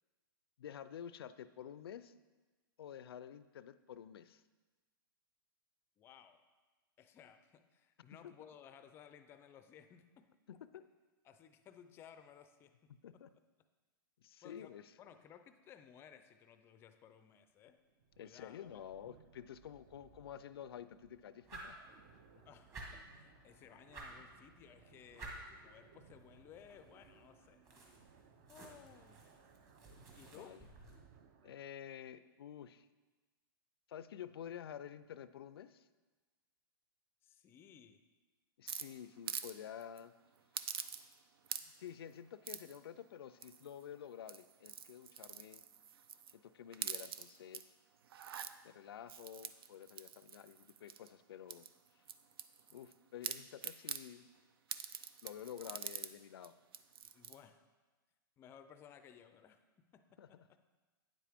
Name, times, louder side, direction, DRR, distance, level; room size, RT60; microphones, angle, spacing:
voice 1, 0.6-2.1 2.8-4.4 8.2-8.5 10.5-10.9 12.9-13.3 14.2-14.9 18.2-21.8 22.3-22.5 30.3-30.7 31.4-32.9 33.9-35.9 38.6-40.1 41.8-45.6 46.3-47.7 48.6-51.7 52.7-54.3 55.2-56.5 60.2-60.4, left 9 dB, 90° left, 15 dB, 0.4 m, -50 dB
voice 2, 6.0-6.4 7.0-10.3 11.2-12.9 14.4-14.7 15.0-17.8 18.2-18.8 22.5-27.6 28.5-29.3 30.2-30.6 37.2-38.0 57.0-57.7 58.4-59.6 59.9-60.2, left 8 dB, 20° left, 9 dB, 0.4 m, -59 dB
sound 1, 17.5-31.7, right 6 dB, 50° right, 0.7 m, -65 dB
sound 2, 21.4-31.0, right 2 dB, 25° right, 1.5 m, -55 dB
sound 3, 38.7-39.5 39.8-40.0 40.5-41.2 41.4-41.9 42.4-42.8 43.4-43.8 44.2-46.3 46.7-47.6 48.0-48.5 49.1-51.1 51.5-52.9 53.2-54.0 54.7-56.1 56.4-56.5 56.7-57.4, right 8 dB, 85° right, 0.5 m, -45 dB
9.4 x 7.5 x 3.5 m, 1.3 s
hypercardioid pair, 150°, 12 cm